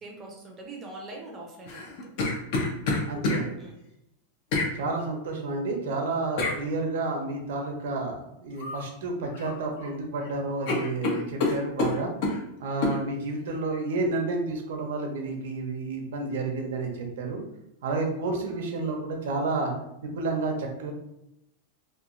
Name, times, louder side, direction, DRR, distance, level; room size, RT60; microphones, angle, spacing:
voice 1, 0.0-2.0 3.6-3.8, right 2 dB, 15° right, -1 dB, 0.5 m, -42 dB
sound 1, 1.7-3.4 4.5-4.7 6.4-6.6 8.6-8.9 9.2-9.9 10.2-10.3 10.7-12.4 12.8-13.0, left 3 dB, 45° left, 0.6 m, -27 dB
voice 2, 3.1-3.5 4.8-12.1 12.6-17.4 17.8-19.7 20.0-20.9, right 3 dB, 75° right, 2 dB, 0.7 m, -30 dB
3.0 x 2.2 x 2.5 m, 0.82 s
supercardioid pair, 170°, 0 cm